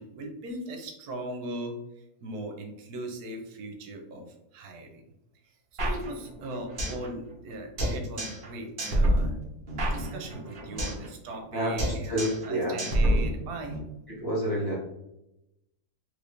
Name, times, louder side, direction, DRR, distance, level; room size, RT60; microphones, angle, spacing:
voice 1, 0.0-5.0 5.4-9.4 9.9-13.8, right 1 dB, 85° right, 4 dB, 1.2 m, -39 dB
sound 1, 5.8-7.1 7.3-7.4 7.8-8.5 8.8-11.1 11.3-11.5 11.8-12.5 12.8-13.8, right 1 dB, 40° right, 0.9 m, -28 dB
voice 2, 12.1-12.8 13.1-13.2 14.2-14.7, equal, 15° left, -8 dB, 1.1 m, -28 dB
3.5 x 3.1 x 2.5 m, 0.87 s
omnidirectional pair, 1.6 m